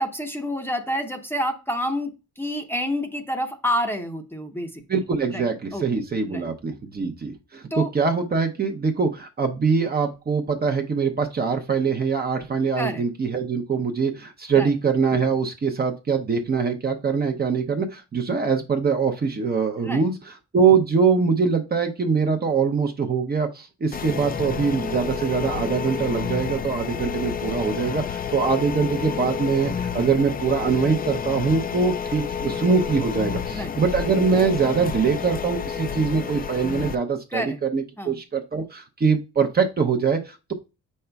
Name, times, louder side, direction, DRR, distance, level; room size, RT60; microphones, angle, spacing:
voice 1, 0.0-2.1 2.4-5.0 5.3-5.4 5.7-5.8 6.3-6.5 7.7-7.9 12.8-13.0 14.5-14.7 19.8-20.0 33.5-33.8 37.3-37.6 38.0-38.2, equal, 5° left, 5 dB, 0.8 m, -28 dB
voice 2, 4.9-20.1 20.5-40.5, right 5 dB, 30° right, 4 dB, 0.8 m, -23 dB
sound 1, 23.9-37.0, left 7 dB, 30° left, 0.4 m, -30 dB
7.7 x 5.4 x 2.3 m, 0.29 s
cardioid pair, 90°, 30 cm